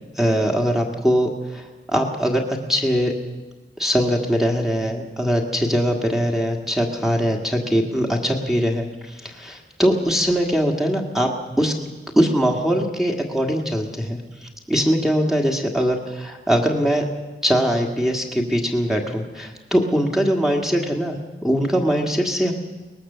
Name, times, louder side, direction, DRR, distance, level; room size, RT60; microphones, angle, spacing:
voice 1, 0.2-3.1 3.8-11.3 11.6-11.7 12.1-14.2 14.7-17.0 17.4-22.5, equal, ahead, 2 dB, 1.7 m, -21 dB
23.0 x 19.5 x 6.8 m, 1.2 s
head